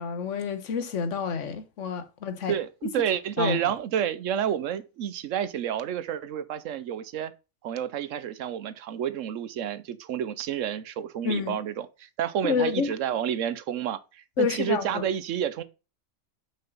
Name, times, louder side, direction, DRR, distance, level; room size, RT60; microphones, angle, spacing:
voice 1, 0.0-2.5 3.4-3.6 11.2-11.6 12.4-12.9 14.4-15.0, left 6 dB, 65° left, 1.3 m, -28 dB
voice 2, 2.5-7.3 7.6-15.6, right 9 dB, 75° right, 1.0 m, -30 dB
5.7 x 5.6 x 5.2 m
omnidirectional pair, 1.4 m